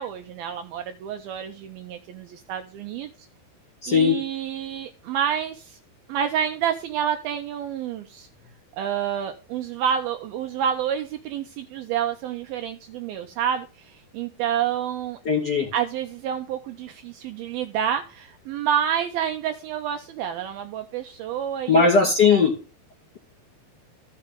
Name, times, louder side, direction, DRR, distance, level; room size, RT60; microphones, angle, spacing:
voice 1, 0.0-3.1 3.9-5.8 6.1-8.3 8.8-15.2 15.7-21.9 22.3-22.4, right 9 dB, 75° right, 6 dB, 2.3 m, -28 dB
voice 2, 3.8-4.2 15.2-15.7 21.7-22.5, left 5 dB, 30° left, 0 dB, 2.4 m, -18 dB
15.5 x 5.6 x 3.6 m, 0.34 s
omnidirectional pair, 4.9 m